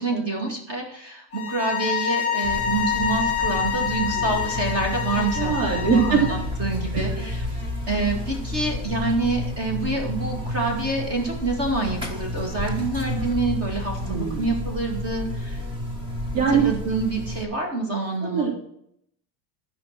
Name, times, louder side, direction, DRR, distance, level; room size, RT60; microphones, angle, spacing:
voice 1, 0.0-6.3 6.6-7.5 7.9-15.6 16.5-18.5, right 3 dB, 30° right, 1 dB, 2.3 m, -27 dB
sound 1, 1.3-6.5, left 8 dB, 15° left, 2.9 m, -27 dB
Buzz, 2.4-17.4, left 1 dB, 10° right, 0.4 m, -31 dB
voice 2, 5.3-6.2 6.9-7.1 14.0-14.5 16.3-16.7 18.2-18.5, right 6 dB, 80° right, -2 dB, 3.3 m, -22 dB
12.5 x 5.2 x 6.0 m, 0.71 s
supercardioid pair, 175°, 49 cm